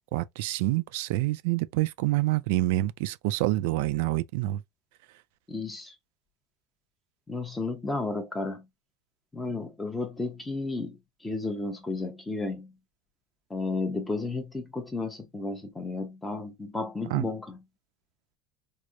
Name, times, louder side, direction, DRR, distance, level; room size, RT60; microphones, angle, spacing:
voice 1, 0.1-4.6 17.1-17.3, right 17 dB, 70° right, 0.4 m, -27 dB
voice 2, 5.5-5.9 7.3-8.6 9.3-12.7 13.5-17.6, left 3 dB, 5° left, 0.6 m, -33 dB
4.6 x 2.0 x 2.6 m
cardioid pair, 175°, 0 cm